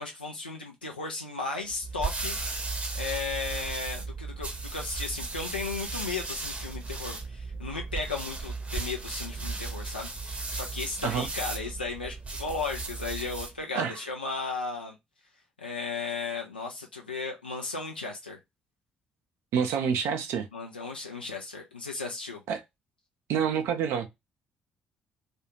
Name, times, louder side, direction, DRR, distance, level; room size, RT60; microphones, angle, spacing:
voice 1, 0.0-2.4 2.9-15.0 15.6-18.4 20.5-22.4, left 4 dB, 90° left, 0.4 m, -35 dB
sound 1, 1.7-13.6, right 3 dB, 25° right, 0.8 m, -36 dB
voice 2, 19.5-20.5 22.5-22.6 23.3-24.1, right 7 dB, 60° right, 0.5 m, -27 dB
2.4 x 2.3 x 3.0 m
figure-of-eight pair, 45°, 5 cm